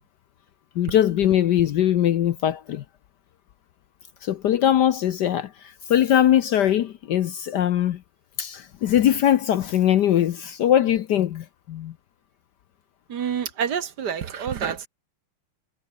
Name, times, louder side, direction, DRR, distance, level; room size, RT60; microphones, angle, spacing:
voice 1, 0.7-2.8 4.2-8.0 8.4-11.9, left 11 dB, 65° left, 1.2 m, -21 dB
voice 2, 13.1-14.9, right 7 dB, 55° right, 1.7 m, -28 dB
omnidirectional pair, 2.3 m